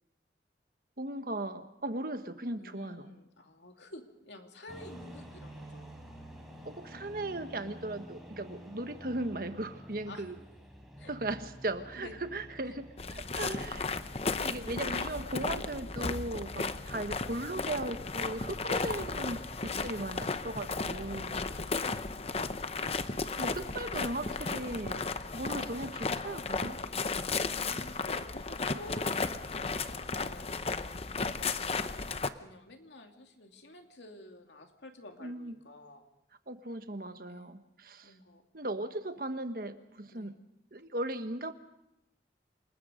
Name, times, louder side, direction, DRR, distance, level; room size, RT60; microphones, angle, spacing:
voice 1, 1.0-3.2 6.6-10.3 11.1-13.8 14.4-21.5 23.4-25.0 25.3-26.8 35.2-35.5 36.5-38.1 38.5-40.4 40.7-41.5, right 1 dB, 55° right, 8 dB, 1.3 m, -37 dB
voice 2, 2.6-5.9 10.1-10.2 11.0-11.1 11.9-12.1 12.6-12.7 13.3-14.1 16.7-16.9 19.8-20.5 21.1-22.3 24.9-25.2 26.9-30.5 31.2-31.6 32.3-36.1 37.3-37.6 38.0-38.4 40.1-40.4, left 1 dB, 85° left, 4 dB, 2.6 m, -51 dB
sound 1, 4.7-21.4, equal, ahead, 3.9 m, -50 dB
sound 2, 13.0-32.3, left 4 dB, 35° left, 0.8 m, -34 dB
28.0 x 20.0 x 5.2 m, 0.85 s
head